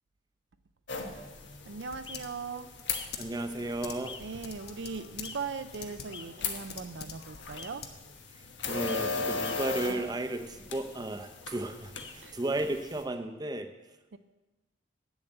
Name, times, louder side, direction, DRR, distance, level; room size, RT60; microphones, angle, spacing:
sound 1, 0.9-13.0, left 4 dB, 80° left, 1.3 m, -39 dB
Typing, 0.9-8.3, left 5 dB, 60° left, 1.0 m, -47 dB
voice 1, 1.7-2.7 4.2-7.9 12.2-12.4 14.1-14.2, right 5 dB, 75° right, 11 dB, 0.5 m, -39 dB
sound 2, 2.0-2.2 2.9-3.1 4.0-4.2 5.2-5.4 6.1-6.3 7.6-7.7 8.9-9.0 9.4-9.6 11.9-12.1, left 5 dB, 25° left, 0.6 m, -44 dB
voice 2, 3.2-4.2 8.7-13.7, right 2 dB, 20° right, 6 dB, 0.7 m, -34 dB
9.3 x 7.1 x 7.9 m, 1.1 s
head